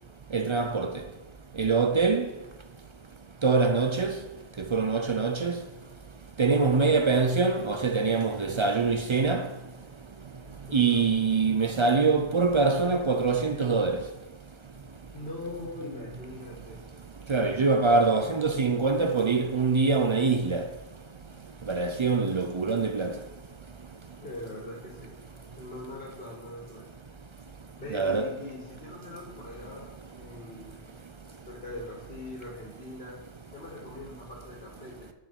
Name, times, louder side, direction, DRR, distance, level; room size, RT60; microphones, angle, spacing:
voice 1, 0.3-1.1 1.5-2.4 3.4-4.3 4.6-5.7 6.4-9.8 10.2-10.3 10.6-14.1 17.2-20.8 21.6-23.2 27.9-28.4, right 4 dB, 50° right, 0.3 m, -24 dB
voice 2, 10.7-11.0 15.1-16.8 18.1-18.4 24.2-25.1 25.6-26.9 27.8-31.1 31.5-33.2 33.5-35.1, left 2 dB, 55° left, 2.0 m, -42 dB
9.5 x 5.1 x 5.2 m
omnidirectional pair, 1.1 m